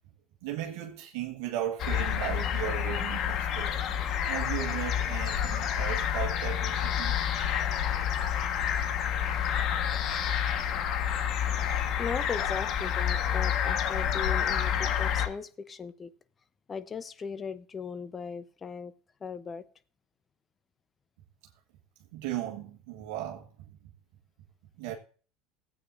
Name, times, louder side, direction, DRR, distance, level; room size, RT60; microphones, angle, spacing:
voice 1, 0.4-3.8 4.3-7.2 22.1-23.5 24.8-25.0, right 12 dB, 75° right, 1.5 m, -36 dB
sound 1, 1.8-15.3, left 9 dB, 50° left, 1.4 m, -29 dB
voice 2, 3.7-4.3 7.7-8.1 12.0-16.1 16.7-18.9 19.2-19.6, left 6 dB, 30° left, 0.8 m, -38 dB
16.5 x 8.6 x 2.6 m
supercardioid pair, 95°, 0 cm